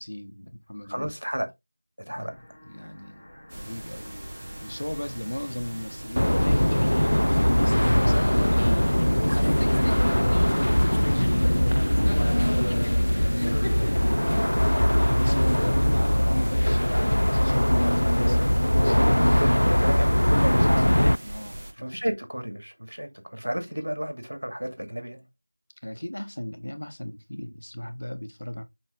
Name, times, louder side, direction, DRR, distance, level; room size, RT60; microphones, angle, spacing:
voice 1, 0.0-1.1 2.1-3.3 3.5-8.4 10.1-12.1 13.0-18.9 21.2-22.0 25.8-28.6, left 1 dB, 35° left, 1.0 m, -37 dB
voice 2, 0.9-1.5 2.1-2.3 9.1-9.7 18.8-20.9 21.1-21.3 21.7-25.2, equal, 70° right, 2.1 m, -32 dB
sound 1, 2.2-15.9, equal, 5° left, 1.1 m, -49 dB
sound 2, 3.5-21.7, right 1 dB, 20° right, 0.7 m, -40 dB
sound 3, 6.2-21.2, equal, 80° left, 0.3 m, -21 dB
6.3 x 4.7 x 3.6 m
figure-of-eight pair, 180°, 0 cm